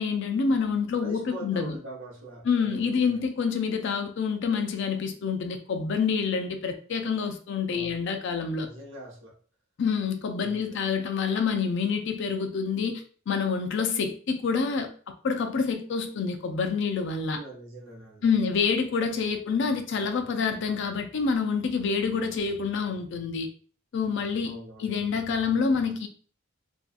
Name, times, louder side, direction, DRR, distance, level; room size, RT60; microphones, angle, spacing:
voice 1, 0.0-1.7 2.4-8.7 9.8-14.9 15.2-17.4 18.2-23.5 23.9-26.1, left 5 dB, 60° left, 0.4 m, -27 dB
voice 2, 1.0-3.2 7.7-7.9 8.6-9.3 10.2-10.8 17.3-18.3 24.4-25.0, right 2 dB, 65° right, 0.8 m, -43 dB
2.6 x 2.2 x 2.4 m
head